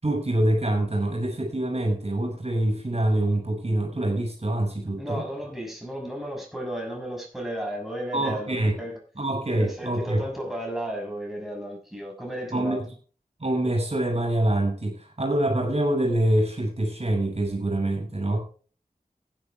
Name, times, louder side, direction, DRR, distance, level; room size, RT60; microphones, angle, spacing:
voice 1, 0.0-5.2 8.1-8.7 9.2-10.2 12.5-12.8 13.4-18.4, right 1 dB, 45° right, 6.4 m, -25 dB
voice 2, 5.0-9.0 9.5-12.8, equal, ahead, 6.2 m, -34 dB
15.5 x 10.5 x 3.5 m
cardioid pair, 40°, 15 cm